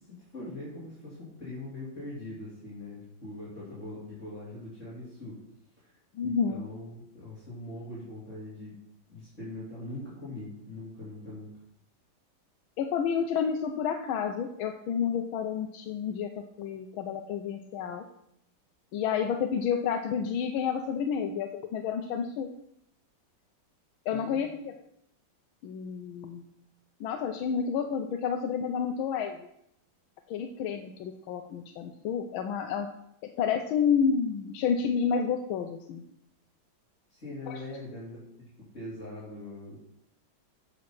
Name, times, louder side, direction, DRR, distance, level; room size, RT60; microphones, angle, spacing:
voice 1, 0.3-5.4 5.8-8.7 9.1-11.5 24.1-24.5 37.1-39.8, left 1 dB, 35° left, -9 dB, 3.8 m, -42 dB
voice 2, 6.1-6.6 12.8-16.3 16.6-18.0 18.9-22.5 24.1-24.8 25.6-26.4 27.0-29.5 30.3-32.9 33.2-36.0 37.5-37.6, left 7 dB, 85° left, 5 dB, 1.5 m, -30 dB
8.4 x 6.4 x 6.0 m, 0.74 s
omnidirectional pair, 2.2 m